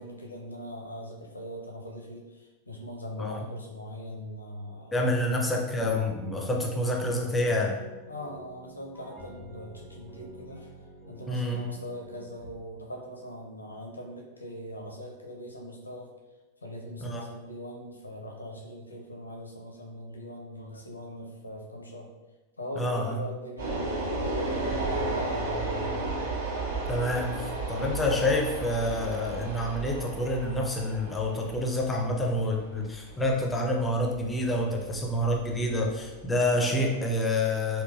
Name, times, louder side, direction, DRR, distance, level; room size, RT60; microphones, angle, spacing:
voice 1, 0.0-5.4 8.1-10.7 11.1-16.1 16.6-22.1 22.6-26.2, equal, 80° left, 0 dB, 0.5 m, -41 dB
voice 2, 4.9-7.7 11.3-11.7 17.0-17.2 22.8-23.2 26.9-37.8, left 1 dB, 10° left, 0 dB, 0.5 m, -28 dB
sound 1, 5.8-12.6, right 1 dB, 35° right, 1.4 m, -48 dB
sound 2, 23.6-36.7, right 2 dB, 70° right, 1.4 m, -34 dB
3.7 x 2.3 x 2.5 m, 1.1 s
figure-of-eight pair, 90°, 0 cm